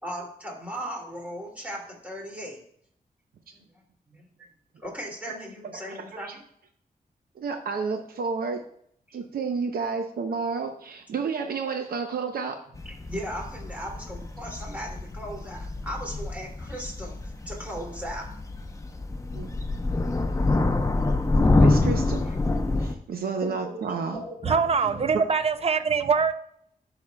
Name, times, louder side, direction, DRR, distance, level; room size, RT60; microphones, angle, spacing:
voice 1, 0.0-2.6 3.5-3.6 4.1-4.3 4.8-6.4 9.1-9.2 12.8-18.3 23.4-25.1, equal, 10° right, -1 dB, 2.6 m, -37 dB
voice 2, 5.7-6.4 7.4-8.7 9.1-12.6 19.3-19.5 21.6-22.2 22.8-24.2, right 5 dB, 90° right, 5 dB, 0.7 m, -31 dB
sound 1, 12.7-22.9, left 2 dB, 20° left, 0.7 m, -26 dB
voice 3, 24.4-26.3, right 5 dB, 40° right, 10 dB, 0.6 m, -23 dB
12.5 x 6.0 x 2.2 m, 0.67 s
wide cardioid pair, 110°, 15 cm